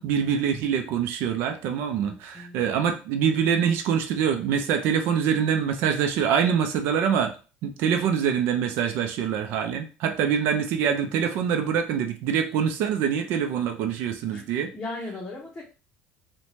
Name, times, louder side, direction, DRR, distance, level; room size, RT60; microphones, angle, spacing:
voice 1, 0.0-7.4 7.6-14.7, right 8 dB, 70° right, 6 dB, 0.4 m, -25 dB
voice 2, 2.0-2.7 14.3-14.4 14.7-15.6, left 2 dB, 15° left, -6 dB, 0.7 m, -37 dB
2.6 x 2.1 x 3.0 m, 0.34 s
cardioid pair, 135°, 4 cm